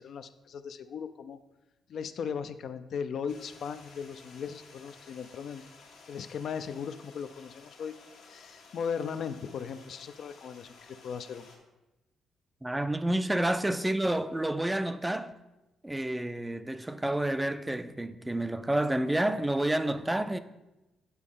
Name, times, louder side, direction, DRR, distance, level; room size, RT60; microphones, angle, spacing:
voice 1, 0.0-1.4 1.9-5.6 6.1-7.9 8.3-11.5, left 6 dB, 65° left, 0.4 m, -37 dB
Stream, 3.3-11.6, left 4 dB, 85° left, 1.3 m, -54 dB
voice 2, 12.6-15.3 15.8-20.4, right 1 dB, 10° right, 0.4 m, -29 dB
8.2 x 4.2 x 3.7 m
cardioid pair, 90°, 0 cm